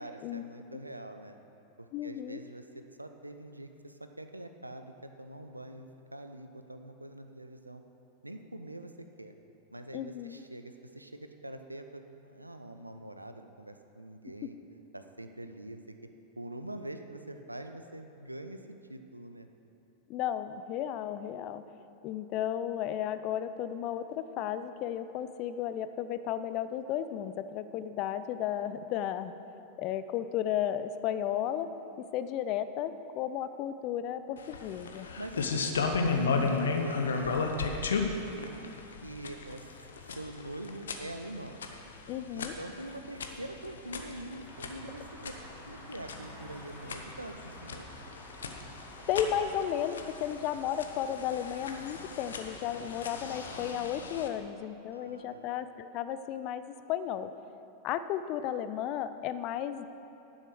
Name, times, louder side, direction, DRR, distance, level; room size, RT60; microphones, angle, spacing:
voice 1, 0.0-1.4 1.8-7.8 8.2-8.9 9.2-9.3 9.7-14.6 14.9-16.0 16.4-19.5 35.2-35.7 36.0-37.3 37.6-38.6 39.0-39.7 40.1-41.6 42.3-45.3 45.6-47.9 54.9-55.5, right 1 dB, 85° right, 7 dB, 0.6 m, -44 dB
voice 2, 1.9-2.4 9.9-10.4 20.1-21.6 22.0-29.3 29.8-31.7 32.0-35.1 36.3-36.6 42.1-42.6 49.1-57.3 57.8-59.9, left 10 dB, 40° left, 12 dB, 0.4 m, -34 dB
sound 1, 34.4-54.3, left 4 dB, 65° left, 0.8 m, -35 dB
Traffic noise roadway noise, 44.4-53.7, equal, 10° right, 2.7 m, -51 dB
10.5 x 6.4 x 6.2 m, 2.9 s
figure-of-eight pair, 90°, 0 cm